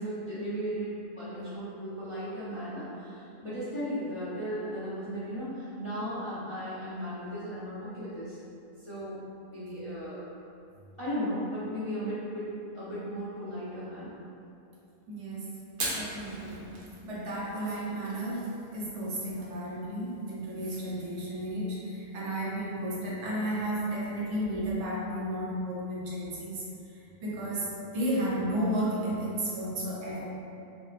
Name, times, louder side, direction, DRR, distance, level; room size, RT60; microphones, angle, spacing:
voice 1, 0.0-8.4 8.8-9.2 9.5-10.2 11.0-14.2, equal, 50° left, -14 dB, 0.4 m, -36 dB
voice 2, 15.1-15.5 15.9-16.7 17.0-26.7 27.2-30.2, right 1 dB, 60° right, -6 dB, 0.9 m, -33 dB
Fire, 15.7-24.9, right 2 dB, 85° right, 1.1 m, -44 dB
3.7 x 2.0 x 2.4 m, 2.7 s
omnidirectional pair, 1.5 m